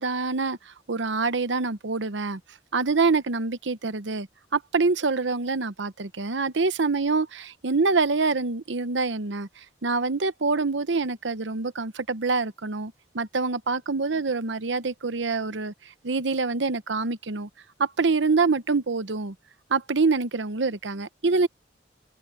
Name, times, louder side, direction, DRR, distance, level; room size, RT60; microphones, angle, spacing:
voice 1, 0.0-2.4 2.7-4.3 4.5-15.7 16.0-17.5 17.8-19.3 19.7-21.5, right 4 dB, 75° right, 0.9 m, -25 dB
open air
head